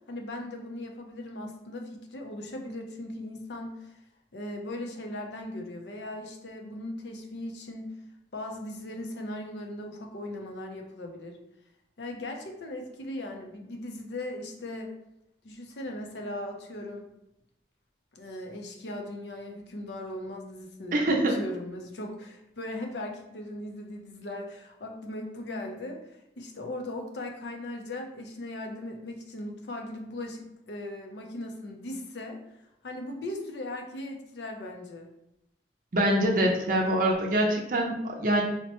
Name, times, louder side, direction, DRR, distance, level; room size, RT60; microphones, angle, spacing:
voice 1, 0.1-4.0 4.3-7.9 8.3-11.4 12.0-14.9 15.4-17.1 18.1-21.0 21.3-32.4 32.8-35.1, left 1 dB, 70° left, 2 dB, 0.6 m, -38 dB
voice 2, 20.9-21.4 35.9-38.4, right 1 dB, 50° right, 0 dB, 0.5 m, -24 dB
4.2 x 2.1 x 2.9 m, 0.85 s
head